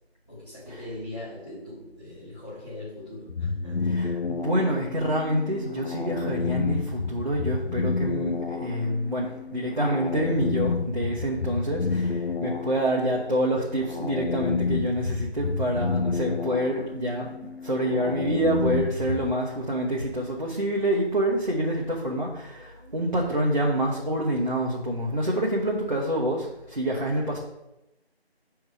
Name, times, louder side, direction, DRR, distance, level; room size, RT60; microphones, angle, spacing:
voice 1, 0.3-3.9, left 1 dB, 25° left, -12 dB, 1.7 m, -40 dB
sound 1, 3.3-19.3, left 4 dB, 65° left, 0.8 m, -30 dB
voice 2, 3.9-17.3 17.6-27.4, right 1 dB, 45° right, -4 dB, 1.1 m, -27 dB
7.0 x 4.7 x 4.9 m, 0.92 s
figure-of-eight pair, 180°, 32 cm